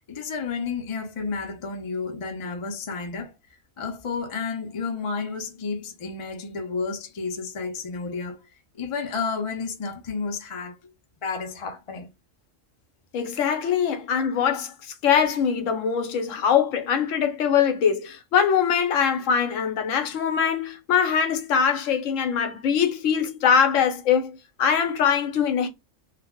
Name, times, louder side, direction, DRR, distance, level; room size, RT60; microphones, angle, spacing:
voice 1, 0.0-3.3 3.8-8.4 8.7-10.8 11.2-12.1, left 4 dB, 50° left, 0.3 m, -31 dB
voice 2, 13.1-14.7 15.0-25.7, left 7 dB, 70° left, 1.0 m, -22 dB
2.4 x 2.0 x 3.4 m
omnidirectional pair, 1.4 m